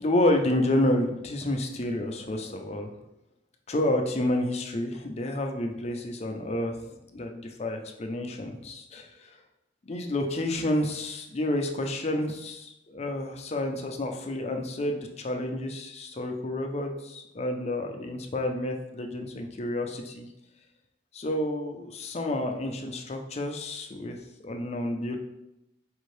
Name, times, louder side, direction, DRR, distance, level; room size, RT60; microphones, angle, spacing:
voice 1, 0.0-2.9 3.7-9.3 9.9-20.3 21.1-24.2 24.4-25.2, left 1 dB, 35° left, 4 dB, 0.5 m, -29 dB
4.9 x 2.6 x 3.2 m, 0.88 s
head